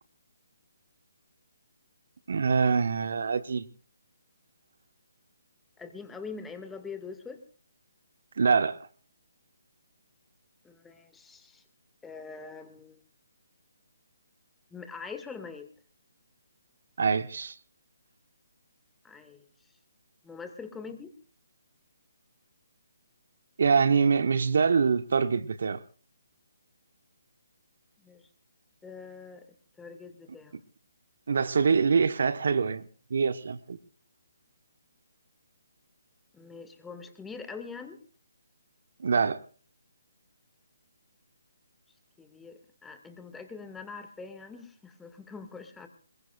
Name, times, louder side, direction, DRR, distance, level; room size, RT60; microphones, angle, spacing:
voice 1, 2.3-3.7 8.4-8.8 17.0-17.6 23.6-25.8 31.3-33.8 39.0-39.4, right 5 dB, 60° right, 1.1 m, -25 dB
voice 2, 5.8-7.4 10.6-11.6 12.0-13.0 14.7-15.7 19.0-19.5 20.2-21.1 28.0-28.3 28.8-29.5 29.8-30.5 36.3-38.0 42.2-45.9, left 5 dB, 5° left, 2.1 m, -43 dB
25.5 x 21.5 x 2.5 m
figure-of-eight pair, 145°, 0 cm